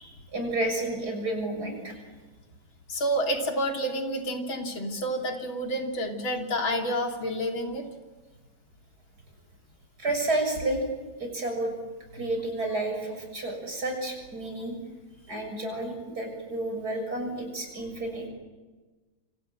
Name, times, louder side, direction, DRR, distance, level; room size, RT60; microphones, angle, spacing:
voice 1, 0.0-2.0 10.0-10.8 11.2-11.7 12.1-14.7 15.3-18.3, right 2 dB, 50° right, 4 dB, 7.5 m, -31 dB
voice 2, 2.9-7.9, equal, 85° left, 2 dB, 3.8 m, -29 dB
27.5 x 27.5 x 7.7 m, 1.3 s
omnidirectional pair, 2.1 m